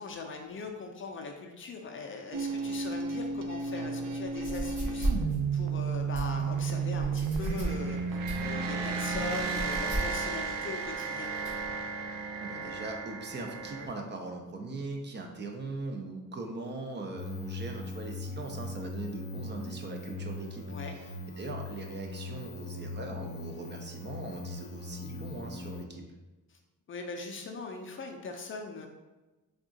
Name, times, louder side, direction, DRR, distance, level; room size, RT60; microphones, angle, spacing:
voice 1, 0.0-5.1 5.5-11.3 20.7-21.0 26.5-26.6 26.9-28.9, left 4 dB, 40° left, 3 dB, 0.4 m, -40 dB
sound 1, 2.3-13.9, right 5 dB, 85° right, 0.5 m, -33 dB
sound 2, 4.3-11.7, right 1 dB, 65° right, 1.5 m, -36 dB
voice 2, 12.4-26.0, right 2 dB, 35° right, 2 dB, 0.4 m, -40 dB
sound 3, 17.2-25.8, left 3 dB, 70° left, 0.7 m, -41 dB
3.6 x 2.3 x 3.8 m, 1.1 s
cardioid pair, 140°, 32 cm